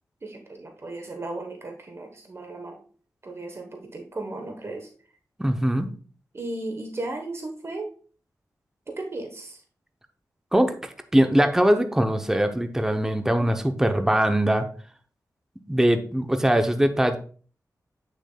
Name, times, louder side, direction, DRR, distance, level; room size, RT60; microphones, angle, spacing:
voice 1, 0.2-2.8 3.2-4.9 6.3-7.9 8.9-9.6, right 2 dB, 40° right, 4 dB, 1.0 m, -35 dB
voice 2, 5.4-5.9 10.5-14.6 15.7-17.2, right 1 dB, 5° right, 6 dB, 0.7 m, -22 dB
8.1 x 6.5 x 2.3 m, 0.41 s
wide cardioid pair, 75°, 6 cm